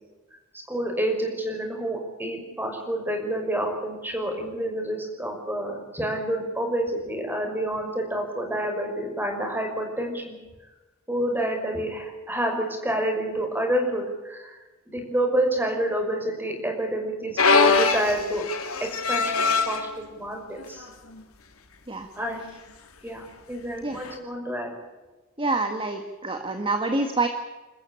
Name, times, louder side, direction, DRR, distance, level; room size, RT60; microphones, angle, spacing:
voice 1, 0.7-10.4 11.1-14.6 14.9-18.4 18.8-20.9 22.2-22.4 23.0-24.7, right 1 dB, 10° right, 3 dB, 6.1 m, -28 dB
sound 1, 17.4-19.8 20.6-20.8 21.2-21.3 22.2-22.4 24.0-24.1, left 4 dB, 85° left, 3.2 m, -22 dB
voice 2, 25.4-27.3, right 3 dB, 25° right, 6 dB, 1.8 m, -26 dB
29.0 x 14.5 x 8.7 m, 1.2 s
head